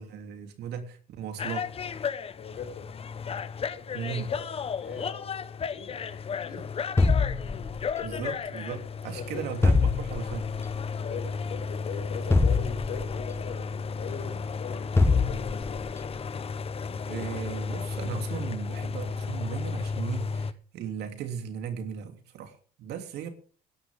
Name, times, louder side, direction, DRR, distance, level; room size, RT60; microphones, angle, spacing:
voice 1, 0.0-1.7 3.9-4.3 8.0-10.5 17.0-23.3, right 8 dB, 75° right, 3.1 m, -37 dB
sound 1, 1.4-20.5, left 5 dB, 35° left, 1.0 m, -34 dB
voice 2, 2.4-2.9 4.1-4.5 4.8-7.0 7.9-8.3 9.1-9.4 11.0-15.8, left 6 dB, 60° left, 5.8 m, -41 dB
sound 2, 7.0-8.1 9.6-10.6 12.3-13.4 15.0-15.9, left 3 dB, 15° left, 1.2 m, -24 dB
19.5 x 11.0 x 3.7 m
cardioid pair, 110°, 17 cm